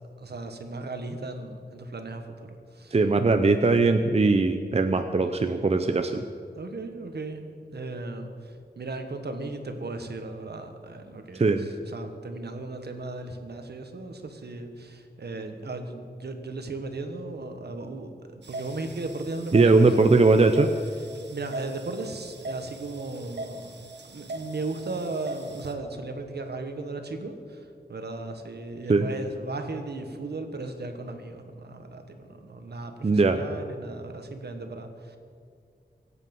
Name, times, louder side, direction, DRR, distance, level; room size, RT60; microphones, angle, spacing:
voice 1, 0.2-3.0 6.5-20.1 21.3-23.7 24.0-35.2, right 3 dB, 70° right, 6 dB, 1.5 m, -36 dB
voice 2, 2.9-6.2 11.4-11.7 19.5-20.7 28.9-29.1 33.0-33.4, right 3 dB, 35° right, 7 dB, 0.7 m, -20 dB
sound 1, 18.4-25.7, right 1 dB, 85° right, 1.4 m, -40 dB
24.5 x 8.4 x 5.5 m, 2.2 s
wide cardioid pair, 105°, 17 cm